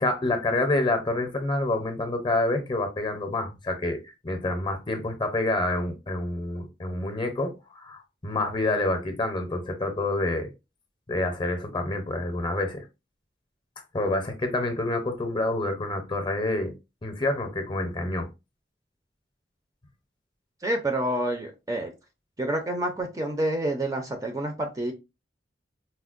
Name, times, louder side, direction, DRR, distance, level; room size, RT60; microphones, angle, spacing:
voice 1, 0.0-10.5 11.1-12.8 13.9-16.7 17.0-18.3, left 2 dB, 25° left, 6 dB, 0.6 m, -27 dB
voice 2, 20.6-21.9 22.4-24.9, right 1 dB, 20° right, 4 dB, 0.4 m, -28 dB
4.3 x 2.0 x 2.4 m, 0.26 s
head